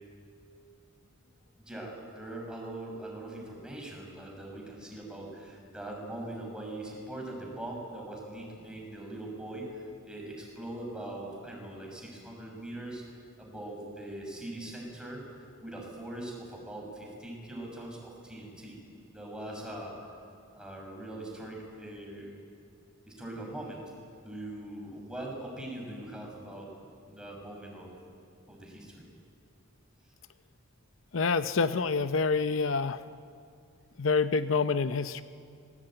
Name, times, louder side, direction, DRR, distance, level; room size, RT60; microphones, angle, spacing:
voice 1, 1.7-13.0 13.4-18.8 19.1-20.0 20.5-22.4 23.1-23.8 24.2-26.7 27.1-27.9 28.5-29.1, right 1 dB, 5° right, -1 dB, 6.2 m, -41 dB
voice 2, 31.1-33.0 34.0-35.2, left 4 dB, 70° left, 11 dB, 0.7 m, -27 dB
25.5 x 21.5 x 9.0 m, 2.4 s
head